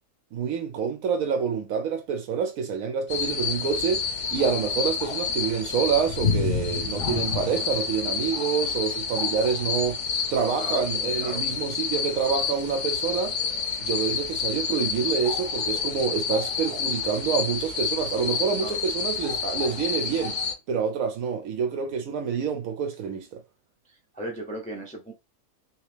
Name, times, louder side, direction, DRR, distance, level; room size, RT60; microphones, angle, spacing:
voice 1, 0.3-4.0 4.3-10.0 10.3-13.4 13.8-20.4 20.7-23.4, right 6 dB, 80° right, 1.0 m, -27 dB
sound 1, 3.1-20.5, left 6 dB, 60° left, 1.0 m, -29 dB
voice 2, 24.1-25.1, right 1 dB, 10° left, 0.5 m, -35 dB
3.1 x 3.0 x 3.2 m
omnidirectional pair, 1.5 m